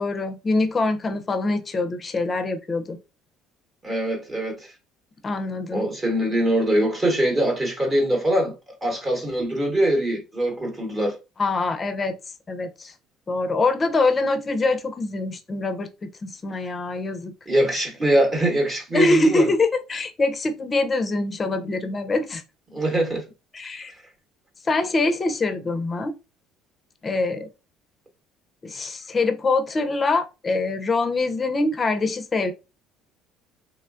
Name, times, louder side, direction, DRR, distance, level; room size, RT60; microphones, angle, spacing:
voice 1, 0.0-3.0 5.2-5.9 11.4-12.2 12.5-12.9 13.3-15.9 16.2-17.3 18.9-22.4 23.5-23.9 24.7-26.1 27.0-27.5 28.6-32.5, left 3 dB, 30° left, 0.5 m, -24 dB
voice 2, 3.8-4.7 5.7-8.5 8.8-11.2 17.5-19.5 22.7-23.2 23.9-24.0, right 1 dB, 25° right, 1.0 m, -23 dB
3.0 x 2.1 x 2.4 m
cardioid pair, 105°, 0 cm